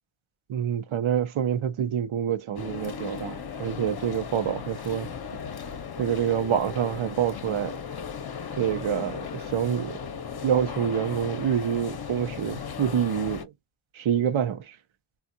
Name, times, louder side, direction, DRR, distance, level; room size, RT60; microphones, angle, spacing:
voice 1, 0.5-5.1 6.0-7.8 8.5-10.0 10.4-13.5 13.9-14.8, right 9 dB, 70° right, 0.7 m, -27 dB
sound 1, 2.6-13.4, left 7 dB, 50° left, 0.8 m, -36 dB
3.5 x 2.4 x 2.7 m
wide cardioid pair, 80°, 49 cm